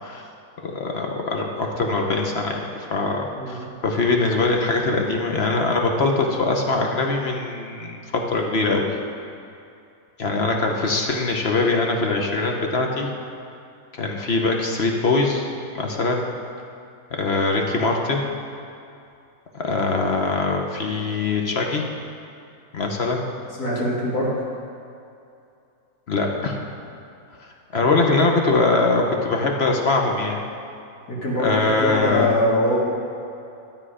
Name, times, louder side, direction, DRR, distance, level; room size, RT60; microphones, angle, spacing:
voice 1, 0.6-3.6 3.8-8.0 8.3-8.9 10.2-13.1 14.0-16.3 17.1-18.3 19.5-21.8 22.7-23.2 26.1-26.6 27.7-30.4 31.4-32.3, left 3 dB, 45° left, 1 dB, 1.0 m, -22 dB
voice 2, 23.6-24.3 31.1-32.8, left 1 dB, 75° left, -7 dB, 3.0 m, -23 dB
12.0 x 7.8 x 4.9 m, 2.6 s
omnidirectional pair, 1.7 m